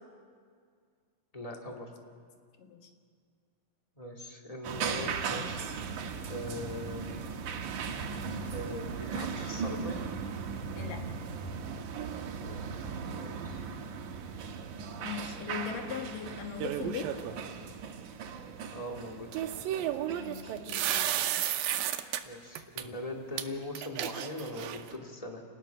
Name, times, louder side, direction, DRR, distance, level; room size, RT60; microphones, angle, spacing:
voice 1, 1.3-1.9 4.0-5.5 6.3-7.2 8.5-10.0 12.4-13.7 18.7-19.9 22.2-25.4, left 1 dB, 15° left, 1 dB, 1.6 m, -41 dB
voice 2, 2.6-2.9 10.8-11.2 15.0-17.1 20.2-21.0, left 7 dB, 75° left, 4 dB, 3.1 m, -39 dB
sound 1, 4.6-21.2, right 5 dB, 70° right, 2.6 m, -38 dB
sound 2, 16.6-17.3 19.3-22.2 22.6-22.8 23.4-23.5 23.7-24.9, right 11 dB, 85° right, 2.6 m, -32 dB
29.5 x 19.0 x 5.8 m, 2.1 s
omnidirectional pair, 4.0 m